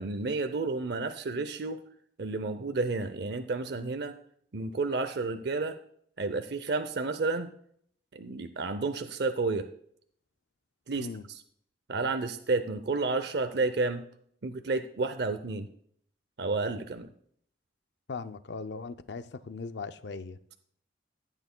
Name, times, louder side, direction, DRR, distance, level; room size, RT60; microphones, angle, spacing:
voice 1, 0.0-1.8 2.2-4.1 4.5-5.8 6.2-7.5 8.1-9.7 10.9-11.1 11.9-14.0 14.4-15.7 16.4-17.1, right 3 dB, 60° right, 0.6 m, -31 dB
voice 2, 18.1-20.4, left 4 dB, 65° left, 0.5 m, -39 dB
14.0 x 9.1 x 2.2 m
head